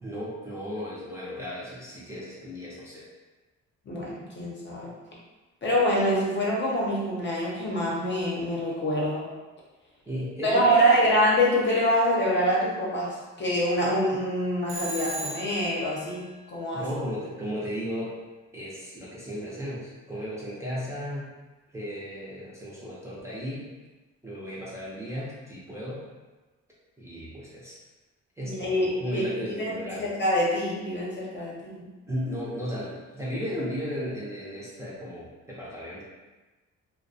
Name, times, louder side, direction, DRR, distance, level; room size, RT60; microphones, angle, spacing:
voice 1, 0.0-3.0 10.1-11.1 16.7-18.1 18.5-21.3 21.7-23.7 24.2-26.0 27.0-27.8 28.4-30.1 32.1-36.0, equal, 10° right, -7 dB, 0.6 m, -35 dB
voice 2, 3.9-4.9 5.6-9.3 10.4-16.9 28.4-31.9, equal, 35° left, -5 dB, 0.7 m, -25 dB
Telephone, 14.7-15.8, right 2 dB, 90° right, 0.6 m, -34 dB
2.3 x 2.2 x 2.6 m, 1.2 s
cardioid pair, 90°, 30 cm